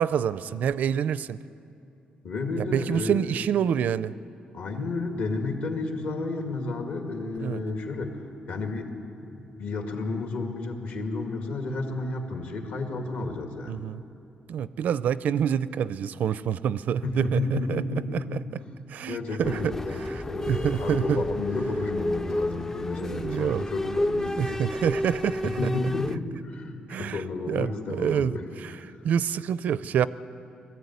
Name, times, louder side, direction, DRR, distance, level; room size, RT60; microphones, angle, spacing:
voice 1, 0.0-1.4 2.6-4.1 7.4-7.6 13.7-14.0 14.5-18.4 18.9-19.7 20.1-21.2 23.0-23.7 24.3-25.7 26.9-27.2 27.5-28.7 29.0-30.1, right 8 dB, 60° right, 16 dB, 0.4 m, -27 dB
voice 2, 2.2-3.4 4.5-8.9 9.2-13.8 17.0-18.4 19.1-24.6 25.6-28.4 28.8-28.9, left 3 dB, 60° left, 3 dB, 2.2 m, -32 dB
sound 1, 19.4-26.2, left 1 dB, 15° left, 0.4 m, -31 dB
20.5 x 14.0 x 9.5 m, 2.7 s
wide cardioid pair, 170°, 3 cm